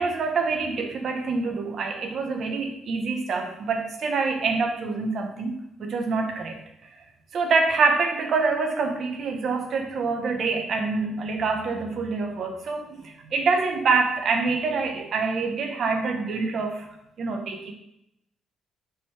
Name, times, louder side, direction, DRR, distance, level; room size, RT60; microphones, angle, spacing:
voice 1, 0.0-6.6 7.3-16.8 17.2-17.7, right 4 dB, 60° right, 4 dB, 1.0 m, -26 dB
5.8 x 3.6 x 4.7 m, 0.80 s
cardioid pair, 90°, 0 cm